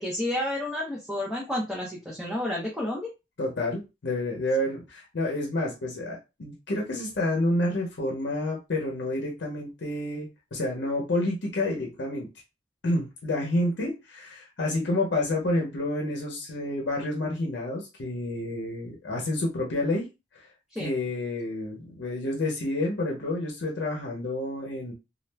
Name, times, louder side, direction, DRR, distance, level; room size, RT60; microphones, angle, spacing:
voice 1, 0.0-3.1 20.7-20.9, left 1 dB, ahead, -4 dB, 0.6 m, -30 dB
voice 2, 3.4-12.3 12.8-20.1 20.3-20.5 20.8-24.9, left 1 dB, 75° left, -1 dB, 0.7 m, -29 dB
2.4 x 2.1 x 3.2 m, 0.26 s
head